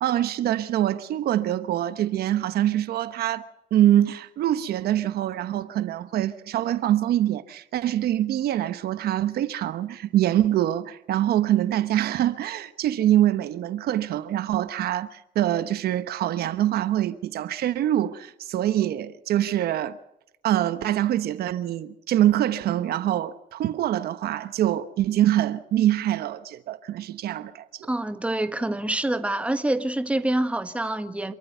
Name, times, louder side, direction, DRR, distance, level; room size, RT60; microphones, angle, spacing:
voice 1, 0.0-20.0 20.4-27.9, right 12 dB, 65° right, 1.2 m, -24 dB
voice 2, 27.9-31.3, right 1 dB, 5° right, 1.6 m, -26 dB
28.0 x 13.5 x 6.9 m
cardioid pair, 110°, 17 cm